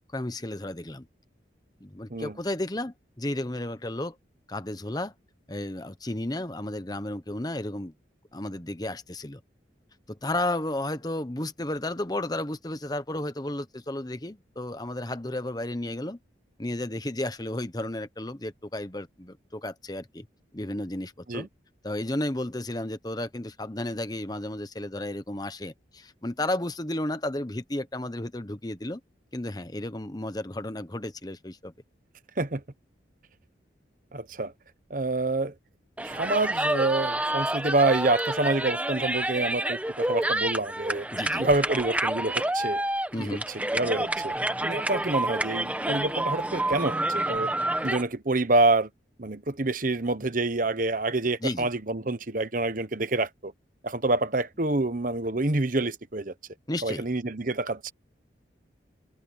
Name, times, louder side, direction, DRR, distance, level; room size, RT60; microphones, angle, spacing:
voice 1, 0.1-1.1 1.8-4.2 4.5-5.1 5.5-7.9 8.3-9.4 10.1-16.2 16.6-20.3 20.5-21.5 21.8-29.0 29.3-31.7 41.1-41.5 43.1-43.5 51.4-51.7 56.7-57.1, left 1 dB, 20° left, 1.1 m, -33 dB
voice 2, 34.1-34.5 34.9-35.5 36.0-41.1 41.4-42.8 43.2-43.4 43.7-44.3 44.6-47.5 47.8-48.9 49.2-53.5 53.8-56.3 56.8-57.9, right 2 dB, 45° right, 1.1 m, -27 dB
sound 1, 36.0-48.0, right 1 dB, 10° right, 1.0 m, -28 dB
head